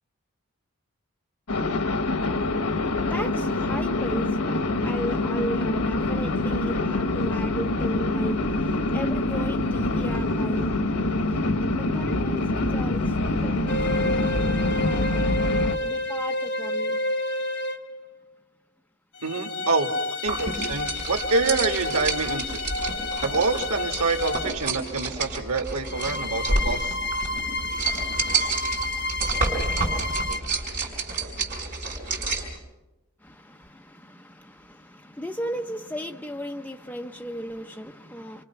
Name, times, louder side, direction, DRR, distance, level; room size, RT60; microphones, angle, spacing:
sound 1, 1.5-15.8, left 2 dB, 85° left, 1.3 m, -25 dB
voice 1, 2.2-15.3 15.8-17.0 33.2-38.4, equal, 5° left, 0.8 m, -37 dB
sound 2, 13.7-18.0 19.2-24.7 25.9-30.4, left 2 dB, 50° left, 1.2 m, -30 dB
voice 2, 19.2-19.9 20.2-22.6 23.2-27.0, right 3 dB, 85° right, 2.1 m, -26 dB
sound 3, 20.3-32.6, right 3 dB, 35° right, 5.9 m, -29 dB
28.5 x 25.0 x 5.9 m
head